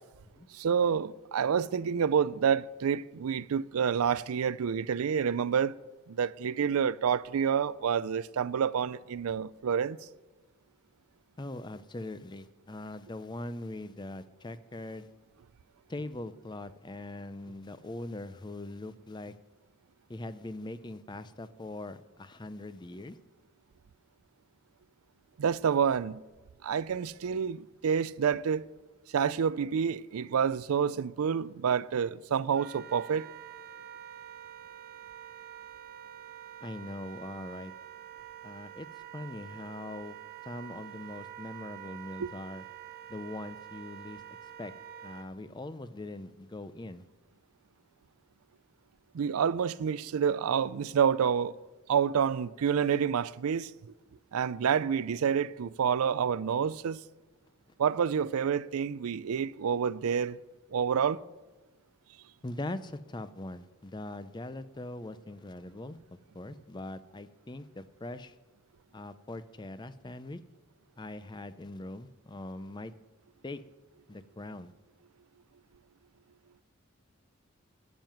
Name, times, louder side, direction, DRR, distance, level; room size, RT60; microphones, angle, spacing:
voice 1, 0.5-5.7 6.1-10.0 25.4-26.2 26.6-28.7 29.1-33.3 42.2-42.3 49.1-51.5 51.9-53.7 54.3-57.0 57.8-60.4 60.7-61.2, right 7 dB, 80° right, 0.4 m, -28 dB
voice 2, 11.4-15.1 15.9-19.3 20.1-23.2 36.6-37.7 38.4-38.9 39.1-40.2 40.4-42.6 43.1-44.2 44.6-44.7 45.0-47.0 62.4-66.0 66.3-68.3 68.9-70.4 71.0-72.9 73.4-73.6 74.1-74.7, left 2 dB, 20° left, 0.5 m, -41 dB
Wind instrument woodwind instrument, 32.5-45.3, right 11 dB, 45° right, 0.7 m, -47 dB
12.0 x 7.4 x 9.1 m
head